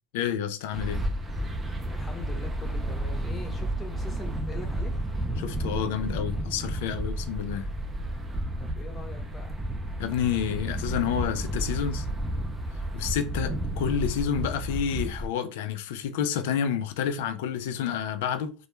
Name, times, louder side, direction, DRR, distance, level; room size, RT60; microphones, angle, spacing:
voice 1, 0.1-1.0 5.4-7.7 10.0-12.1 12.9-18.5, left 8 dB, 80° left, 0.3 m, -29 dB
sound 1, 0.7-15.3, right 1 dB, 20° right, 0.5 m, -32 dB
voice 2, 1.8-4.9 8.6-9.6, left 2 dB, 25° left, 0.8 m, -42 dB
2.2 x 2.1 x 3.0 m
supercardioid pair, 100°, 0 cm